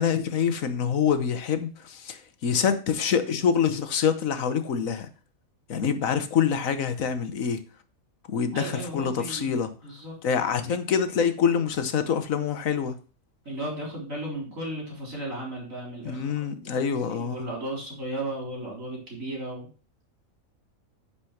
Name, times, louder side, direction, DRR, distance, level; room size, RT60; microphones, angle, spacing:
voice 1, 0.0-5.1 5.7-7.6 8.3-9.7 10.2-13.0 16.0-17.5, left 7 dB, 75° left, 1.4 m, -26 dB
voice 2, 8.5-9.6 9.8-10.2 13.5-16.4 17.1-19.7, right 1 dB, 70° right, 4.2 m, -35 dB
10.0 x 5.1 x 5.9 m
omnidirectional pair, 1.4 m